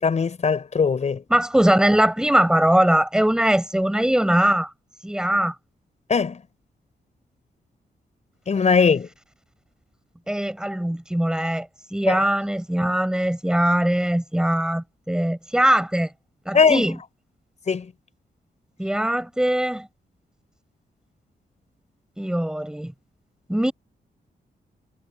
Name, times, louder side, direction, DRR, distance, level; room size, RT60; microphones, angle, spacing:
voice 1, 0.0-1.2 6.1-6.4 8.5-9.1 12.1-12.3 16.5-16.9 17.7-17.9, left 5 dB, 40° left, 5.4 m, -20 dB
voice 2, 1.3-4.7 5.0-5.5 10.3-16.1 16.4-17.0 18.8-19.9 22.2-22.9 23.5-23.7, right 1 dB, 5° right, 6.5 m, -21 dB
wide cardioid pair, 170°, 17 cm